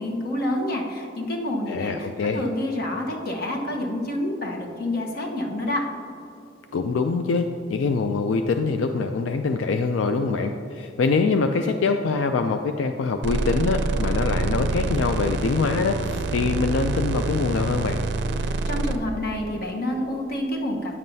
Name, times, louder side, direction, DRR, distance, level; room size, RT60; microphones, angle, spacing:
voice 1, 0.0-2.1 2.3-5.8 18.4-21.0, left 1 dB, 50° left, 0 dB, 1.1 m, -28 dB
voice 2, 1.7-2.4 6.7-18.0, left 4 dB, 80° left, 6 dB, 0.4 m, -24 dB
sound 1, 13.2-19.0, right 3 dB, 60° right, 0.5 m, -26 dB
9.5 x 7.4 x 2.7 m, 2.8 s
head